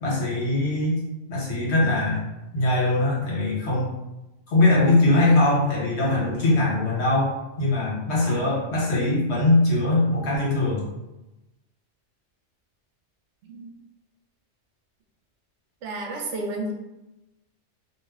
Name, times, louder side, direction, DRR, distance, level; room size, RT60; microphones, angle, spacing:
voice 1, 0.0-1.0 1.3-2.2 2.5-3.9 4.5-10.9, left 2 dB, 65° left, -5 dB, 1.3 m, -21 dB
voice 2, 8.1-8.5 13.4-13.7 15.8-16.7, right 2 dB, 80° right, 1 dB, 0.9 m, -32 dB
2.6 x 2.1 x 3.5 m, 0.97 s
omnidirectional pair, 1.2 m